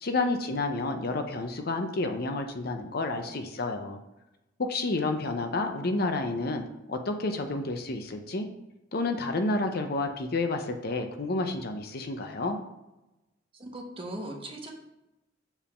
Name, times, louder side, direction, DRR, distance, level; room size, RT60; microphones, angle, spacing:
voice 1, 0.0-4.0 4.6-8.5 8.9-12.6, left 2 dB, 50° left, 6 dB, 0.7 m, -30 dB
voice 2, 13.5-14.7, right 1 dB, 30° right, 1 dB, 1.0 m, -39 dB
7.2 x 3.6 x 5.6 m, 0.96 s
head